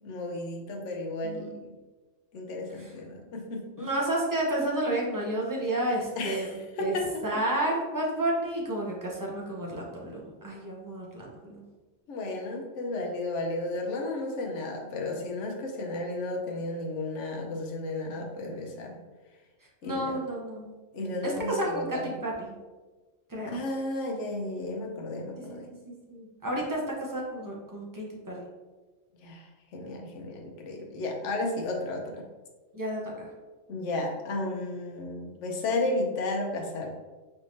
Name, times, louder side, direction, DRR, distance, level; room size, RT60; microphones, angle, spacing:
voice 1, 0.0-1.8 2.3-3.9 6.2-7.4 12.1-19.0 19.8-20.2 20.9-22.0 23.4-25.7 29.2-32.3 33.7-36.9, left 2 dB, 75° left, 1 dB, 1.0 m, -33 dB
voice 2, 3.8-6.9 7.2-11.6 19.8-20.7 21.2-22.6 23.3-23.6 25.4-25.6 25.9-26.8 27.1-28.5 32.7-33.3, right 1 dB, 20° right, -3 dB, 0.6 m, -31 dB
4.5 x 3.4 x 2.6 m, 1.3 s
omnidirectional pair, 1.3 m